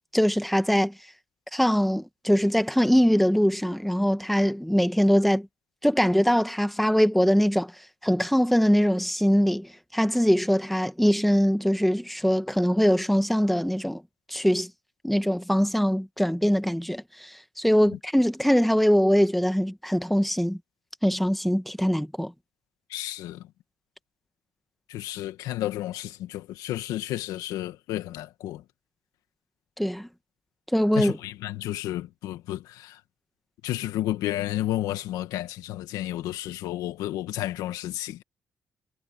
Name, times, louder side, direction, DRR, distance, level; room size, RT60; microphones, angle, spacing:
voice 1, 0.1-0.9 1.5-5.5 5.8-7.7 8.0-14.0 14.3-14.7 15.0-20.6 21.0-22.3 29.8-30.1 30.7-31.2, equal, ahead, 1.6 m, -22 dB
voice 2, 22.9-23.4 24.9-28.6 31.0-33.0 33.6-38.2, left 14 dB, 90° left, 2.1 m, -32 dB
supercardioid pair, 55°, 6 cm